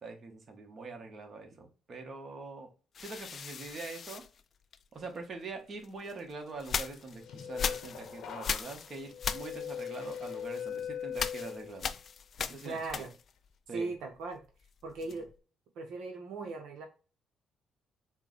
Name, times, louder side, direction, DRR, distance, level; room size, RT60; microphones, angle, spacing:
voice 1, 0.0-2.7 3.0-4.2 4.9-11.9 12.4-12.8 13.7-13.9 15.0-15.2, right 3 dB, 45° right, 3 dB, 1.1 m, -44 dB
sound 1, 2.9-5.2 5.8-13.5 13.8-15.4, left 6 dB, 50° left, 0.3 m, -39 dB
sound 2, 6.9-12.0 12.4-12.8, left 8 dB, 75° left, 0.8 m, -41 dB
voice 2, 12.6-13.1 13.7-14.4 14.8-15.3 15.8-16.9, right 3 dB, 80° right, 3 dB, 0.8 m, -38 dB
4.5 x 2.2 x 3.8 m, 0.35 s
cardioid pair, 90°, 0 cm